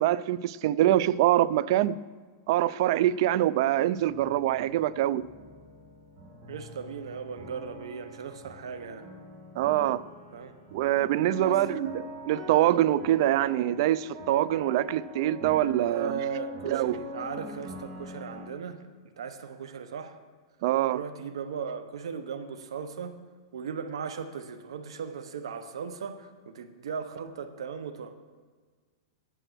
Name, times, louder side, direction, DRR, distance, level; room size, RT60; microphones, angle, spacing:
voice 1, 0.0-2.0 2.5-5.3 9.6-10.1 10.7-16.2 16.7-17.0 20.6-21.0, right 13 dB, 60° right, 0.4 m, -24 dB
sound 1, 4.0-18.5, left 1 dB, 30° right, 2.2 m, -43 dB
voice 2, 6.5-9.1 10.3-10.5 11.4-11.8 15.8-18.8 19.2-20.2 20.9-23.2 23.5-28.1, right 6 dB, 85° right, 0.9 m, -37 dB
9.1 x 8.8 x 6.2 m
hypercardioid pair, 130°, 3 cm